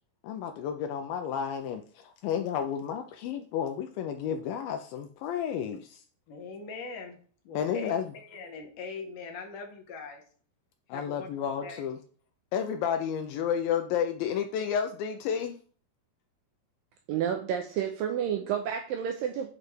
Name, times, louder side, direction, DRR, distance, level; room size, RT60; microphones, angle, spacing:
voice 1, 0.2-6.0 7.5-8.1 10.9-12.0 12.5-15.6, left 8 dB, 85° left, 7 dB, 2.1 m, -31 dB
voice 2, 6.3-7.2 7.5-10.2 10.9-11.3 11.6-11.8, left 4 dB, 65° left, 3 dB, 2.3 m, -41 dB
voice 3, 17.1-19.5, right 9 dB, 85° right, 4 dB, 2.0 m, -30 dB
8.8 x 5.3 x 3.2 m, 0.43 s
omnidirectional pair, 4.7 m